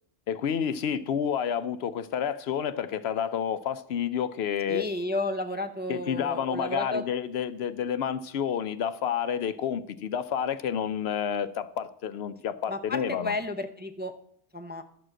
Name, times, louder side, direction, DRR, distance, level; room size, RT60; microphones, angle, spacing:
voice 1, 0.3-4.9 5.9-13.4, left 8 dB, 70° left, 14 dB, 0.8 m, -29 dB
voice 2, 4.7-7.0 12.7-14.1 14.5-14.8, left 2 dB, 10° right, 6 dB, 0.5 m, -32 dB
12.5 x 4.9 x 7.6 m, 0.68 s
omnidirectional pair, 1.2 m